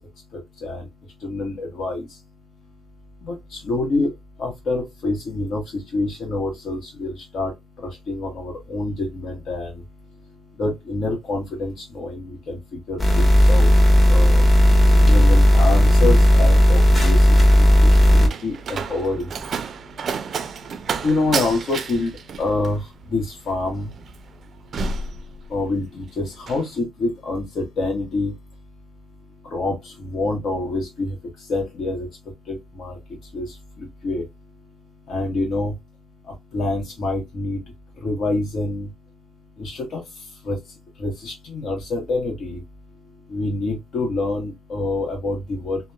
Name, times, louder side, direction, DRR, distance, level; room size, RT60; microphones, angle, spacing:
voice 1, 1.2-2.1 3.2-4.1 4.4-7.5 8.1-9.7 10.6-12.6 12.9-13.7 14.1-14.4 15.0-17.2 17.6-19.3 21.0-22.8 23.1-23.9 25.5-28.3 29.5-31.1 31.5-32.1 32.5-32.9 33.3-33.5 33.8-34.2 35.1-35.7 36.5-37.6 38.0-38.9 39.6-40.0 40.5-40.6 41.0-42.6 43.3-45.8, left 2 dB, 65° left, 1.0 m, -26 dB
sound 1, 13.0-18.3, equal, 25° left, 1.2 m, -14 dB
Slam, 17.4-25.9 26.2-26.7, right 5 dB, 55° right, 0.4 m, -31 dB
2.8 x 2.1 x 2.3 m
cardioid pair, 90°, 0 cm